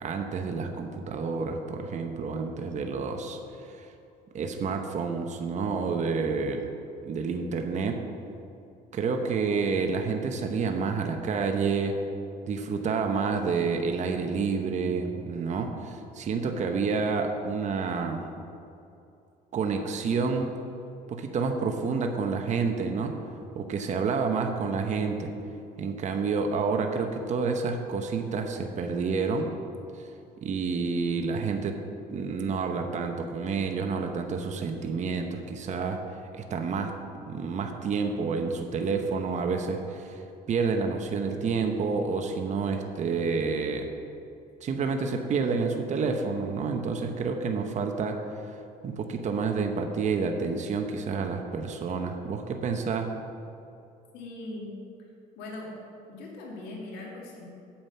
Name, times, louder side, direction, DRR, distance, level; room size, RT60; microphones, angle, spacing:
voice 1, 0.0-3.9 4.3-6.7 7.0-8.0 8.9-12.0 12.5-18.3 19.5-20.5 21.1-23.2 23.5-25.3 25.8-29.5 29.9-30.1 30.4-31.8 32.1-36.0 36.3-36.9 37.3-40.2 40.5-43.9 44.6-48.2 48.5-48.6 48.8-53.1, right 5 dB, 45° right, 4 dB, 0.9 m, -29 dB
voice 2, 54.1-54.7 55.4-55.7 56.1-57.5, left 2 dB, 90° left, -2 dB, 2.1 m, -40 dB
8.7 x 7.4 x 5.5 m, 2.6 s
cardioid pair, 110°, 17 cm